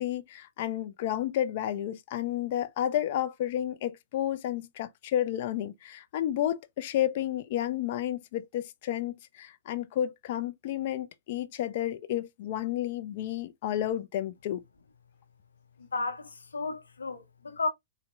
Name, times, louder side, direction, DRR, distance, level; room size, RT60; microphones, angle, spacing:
voice 1, 0.0-14.6, left 11 dB, 50° left, 0.6 m, -31 dB
voice 2, 15.8-17.7, left 3 dB, 90° left, 0.8 m, -33 dB
4.1 x 2.8 x 2.3 m
hypercardioid pair, 125°, 0 cm